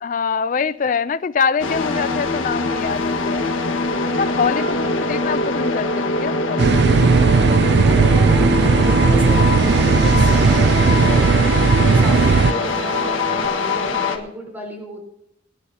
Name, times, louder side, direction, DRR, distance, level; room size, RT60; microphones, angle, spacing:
voice 1, 0.0-3.5 4.0-7.1 13.3-13.8, left 6 dB, 40° left, 0.4 m, -24 dB
sound 1, 1.6-14.2, left 3 dB, 85° left, 1.7 m, -23 dB
voice 2, 4.5-4.9 7.7-13.1 13.5-15.0, equal, 10° right, 4.1 m, -34 dB
sound 2, 6.6-12.5, right 5 dB, 60° right, 0.4 m, -15 dB
sound 3, 7.0-13.5, right 1 dB, 25° right, 0.7 m, -30 dB
24.5 x 10.0 x 2.9 m
head